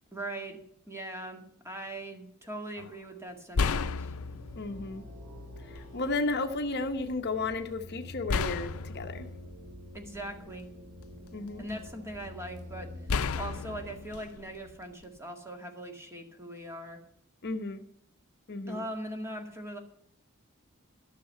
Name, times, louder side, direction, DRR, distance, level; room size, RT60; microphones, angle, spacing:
voice 1, 0.1-0.6 0.9-4.1 9.9-10.7 11.6-12.9 13.4-17.0 18.7-19.8, right 1 dB, 10° right, 4 dB, 2.0 m, -40 dB
sound 1, 2.8-2.9 3.5-4.8 5.8-5.9 8.3-10.5 11.0-11.9 13.1-15.2, left 5 dB, 75° left, 0.5 m, -33 dB
sound 2, 4.1-14.0, left 1 dB, 80° right, 3.6 m, -46 dB
voice 2, 4.6-5.0 5.7-9.3 11.3-11.6 17.4-17.8 18.5-18.8, left 3 dB, 50° left, 7 dB, 0.9 m, -33 dB
13.5 x 6.5 x 7.9 m, 0.72 s
head